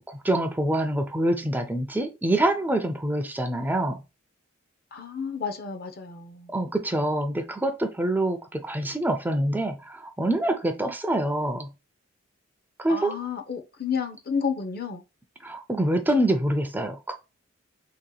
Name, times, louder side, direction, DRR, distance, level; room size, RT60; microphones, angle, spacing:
voice 1, 0.2-4.0 6.5-11.7 12.8-13.1 15.4-17.1, right 1 dB, 10° right, 0.4 m, -25 dB
voice 2, 4.9-6.5 12.9-15.0, left 6 dB, 50° left, 0.6 m, -31 dB
3.3 x 2.9 x 3.8 m
head